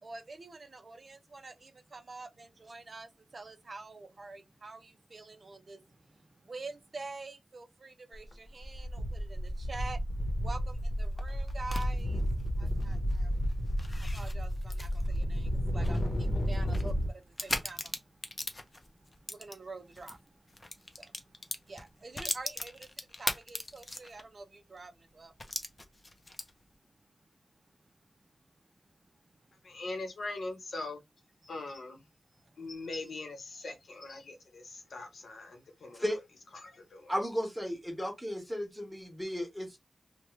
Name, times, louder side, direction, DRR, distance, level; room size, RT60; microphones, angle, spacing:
voice 1, 0.0-12.2 12.6-13.3 14.0-25.3 25.8-26.6 27.2-27.4 31.4-31.8 32.4-32.5 33.0-33.1, right 3 dB, 50° right, 0.5 m, -47 dB
sound 1, 8.1-8.3 8.6-17.1, equal, 55° left, 0.8 m, -32 dB
sound 2, 11.0-20.2 20.5-24.4 24.8-24.9 25.4-26.7, left 2 dB, 30° left, 0.5 m, -40 dB
voice 2, 29.6-31.0 31.4-32.0 32.6-36.0 36.6-37.1, left 2 dB, 90° left, 0.9 m, -41 dB
voice 3, 37.1-39.8, equal, ahead, 1.4 m, -34 dB
2.9 x 2.2 x 3.1 m
wide cardioid pair, 100°, 0 cm